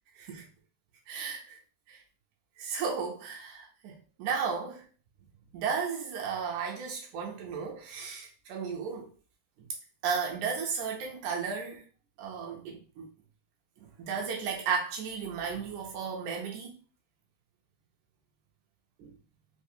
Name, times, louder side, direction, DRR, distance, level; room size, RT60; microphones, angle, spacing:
voice 1, 0.1-0.5 1.1-1.6 1.9-2.0 2.6-4.8 5.5-9.1 10.0-11.8 12.2-13.1 13.8-16.7 19.0-19.1, right 6 dB, 80° right, 2.0 m, -34 dB
4.9 x 2.0 x 2.6 m
omnidirectional pair, 3.6 m